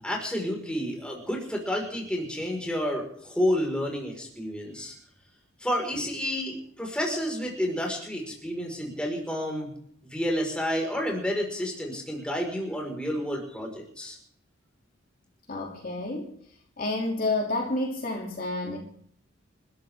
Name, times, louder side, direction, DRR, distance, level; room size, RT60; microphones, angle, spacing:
voice 1, 0.0-4.9 5.6-9.7 10.0-14.2, equal, 5° left, 0 dB, 5.1 m, -30 dB
voice 2, 15.5-16.4 16.8-18.8, left 2 dB, 45° left, 0 dB, 3.0 m, -29 dB
29.5 x 13.5 x 3.7 m, 0.63 s
head